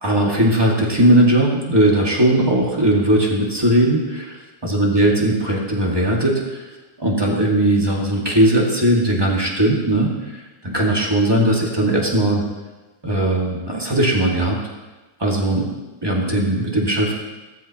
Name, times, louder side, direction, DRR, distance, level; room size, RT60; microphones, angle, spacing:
voice 1, 0.0-6.7 7.0-12.4 13.0-14.6 15.2-15.7 16.0-17.1, right 1 dB, 15° right, -2 dB, 0.9 m, -18 dB
17.5 x 14.0 x 3.0 m, 1.2 s
omnidirectional pair, 4.0 m